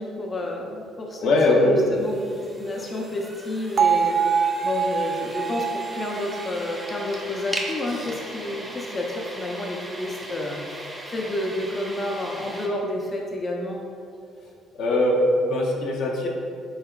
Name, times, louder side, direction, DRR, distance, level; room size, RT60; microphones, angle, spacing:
voice 1, 0.0-13.8, left 1 dB, 30° left, 0 dB, 0.4 m, -30 dB
voice 2, 1.2-1.9 14.7-16.3, left 1 dB, 65° left, -1 dB, 0.6 m, -20 dB
sound 1, 1.9-12.7, right 1 dB, 15° right, 0.7 m, -38 dB
Bell, 3.8-7.8, right 7 dB, 45° right, 0.3 m, -25 dB
5.5 x 3.6 x 2.2 m, 2.4 s
cardioid pair, 95°, 0 cm